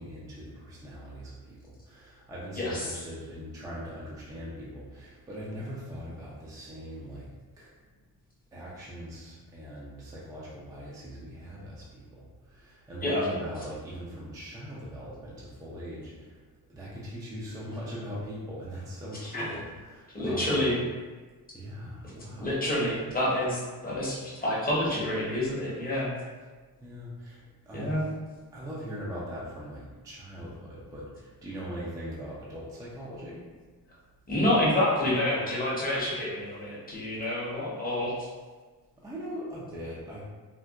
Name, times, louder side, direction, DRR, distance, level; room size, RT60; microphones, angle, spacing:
voice 1, 0.0-7.3 7.6-7.7 8.5-16.3 16.7-20.7 21.5-22.6 26.8-28.0 28.5-33.4 39.0-40.2, equal, 10° right, -6 dB, 0.3 m, -40 dB
voice 2, 20.1-20.7 22.4-26.1 27.7-28.0 34.3-38.1, left 1 dB, 25° left, -7 dB, 0.7 m, -28 dB
3.6 x 2.1 x 2.3 m, 1.4 s
wide cardioid pair, 160°, 39 cm